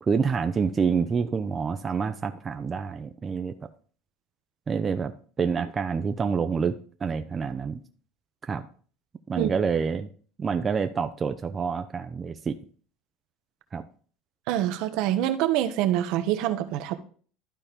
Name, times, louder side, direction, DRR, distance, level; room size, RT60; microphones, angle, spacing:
voice 1, 0.0-3.5 4.7-5.1 5.4-6.7 7.0-7.8 8.5-8.6 9.3-10.1 10.4-12.5 13.7-13.8, right 5 dB, 25° right, 8 dB, 0.5 m, -27 dB
voice 2, 14.5-16.9, right 12 dB, 65° right, 9 dB, 0.9 m, -25 dB
12.0 x 4.3 x 3.4 m, 0.43 s
supercardioid pair, 125°, 0 cm